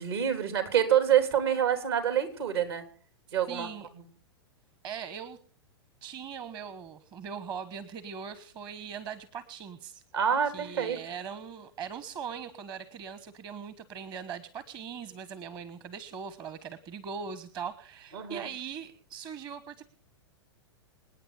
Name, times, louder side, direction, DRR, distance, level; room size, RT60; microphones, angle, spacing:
voice 1, 0.0-2.8 3.3-3.7 10.1-11.0 18.1-18.5, right 9 dB, 70° right, 8 dB, 3.6 m, -26 dB
voice 2, 3.5-3.9 4.8-5.4 6.0-10.0 10.5-19.8, right 7 dB, 35° right, 14 dB, 1.2 m, -40 dB
27.5 x 9.2 x 4.9 m, 0.43 s
hypercardioid pair, 105°, 14 cm